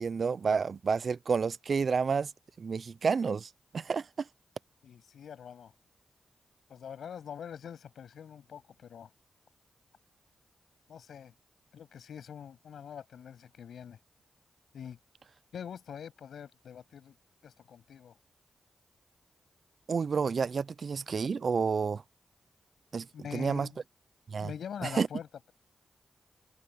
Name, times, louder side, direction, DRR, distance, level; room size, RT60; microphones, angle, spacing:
voice 1, 0.0-2.3 2.6-4.3 19.9-22.0 22.9-23.1 23.3-23.7 24.3-24.5 24.8-25.1, right 5 dB, 65° right, 0.5 m, -30 dB
voice 2, 4.8-5.7 6.7-9.1 10.9-11.3 11.7-14.0 14.7-15.0 15.5-17.1 17.4-18.1 23.1-23.8 24.4-25.5, left 8 dB, 80° left, 7.6 m, -44 dB
open air
supercardioid pair, 40°, 0 cm